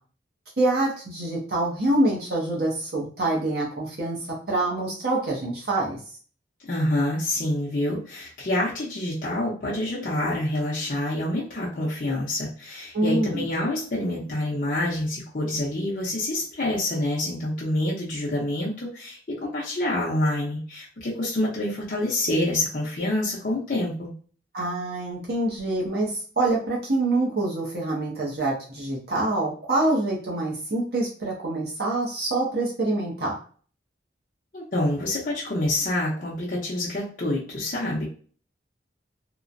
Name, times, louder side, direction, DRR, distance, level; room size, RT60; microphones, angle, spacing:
voice 1, 0.6-4.2 4.5-6.0 12.9-13.5 24.5-33.4, right 2 dB, 55° right, -4 dB, 0.8 m, -25 dB
voice 2, 6.7-24.1 34.5-38.0, left 1 dB, 45° left, -6 dB, 0.7 m, -27 dB
3.0 x 2.1 x 2.5 m, 0.43 s
head